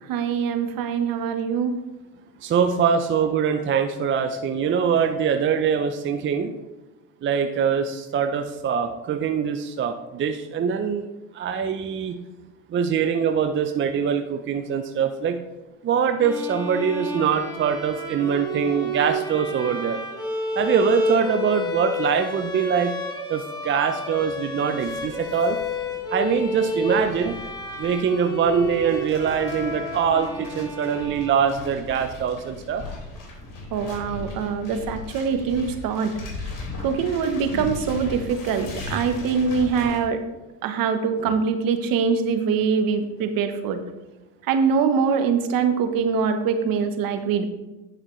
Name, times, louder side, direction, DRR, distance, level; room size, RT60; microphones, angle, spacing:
voice 1, 0.1-1.8 33.7-36.1 36.8-40.2 40.6-43.8 44.5-47.4, right 6 dB, 55° right, 8 dB, 1.1 m, -23 dB
voice 2, 2.4-6.5 7.2-11.1 11.3-12.2 12.7-15.4 15.8-20.0 20.6-22.9 23.3-25.6 26.1-27.4 27.8-32.8 41.2-41.3, right 7 dB, 30° right, 7 dB, 0.6 m, -23 dB
sound 1, 16.2-31.9, equal, 10° left, 1.8 m, -30 dB
sound 2, 24.8-40.0, left 2 dB, 55° left, 2.9 m, -38 dB
9.2 x 7.3 x 3.2 m, 1.1 s
supercardioid pair, 95°, 40 cm